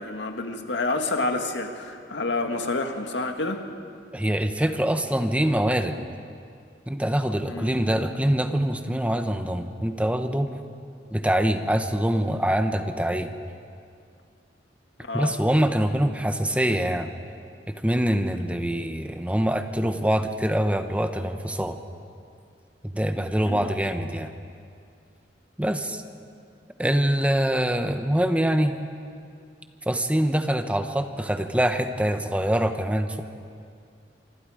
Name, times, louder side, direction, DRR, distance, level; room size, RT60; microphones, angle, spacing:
voice 1, 0.0-3.6 7.5-7.8 15.1-15.4 23.4-23.7, left 2 dB, 80° left, 5 dB, 2.0 m, -28 dB
voice 2, 4.1-6.0 6.9-10.5 11.1-13.3 15.1-17.1 17.7-21.8 22.8-24.3 25.6-26.0 26.8-28.7 29.9-33.2, right 1 dB, 10° right, 7 dB, 1.1 m, -24 dB
26.5 x 25.0 x 5.0 m, 2.3 s
head